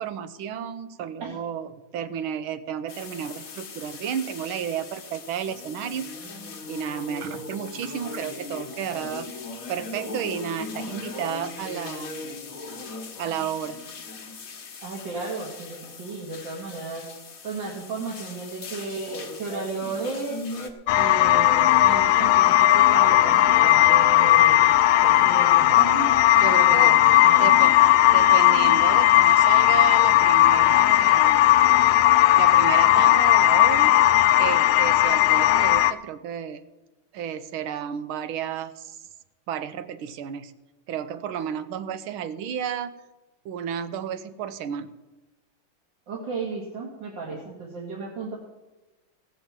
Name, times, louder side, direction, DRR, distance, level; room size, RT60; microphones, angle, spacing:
voice 1, 0.0-6.1 6.7-9.3 9.7-12.1 13.2-13.8 26.4-27.0 27.4-27.8 28.1-31.5 32.4-34.0 34.4-36.6 37.1-39.0 39.5-40.5 40.9-42.9 43.4-44.9, right 8 dB, 80° right, 11 dB, 1.6 m, -32 dB
sound 1, 2.9-20.7, left 3 dB, 45° left, 1.5 m, -39 dB
voice 2, 14.8-17.1 17.4-20.4 20.9-24.6 25.0-26.1 26.5-27.6 46.1-48.4, right 3 dB, 60° right, -4 dB, 2.7 m, -34 dB
sound 2, 20.9-35.9, left 14 dB, 85° left, 1.4 m, -17 dB
16.0 x 6.8 x 7.3 m, 1.1 s
omnidirectional pair, 2.3 m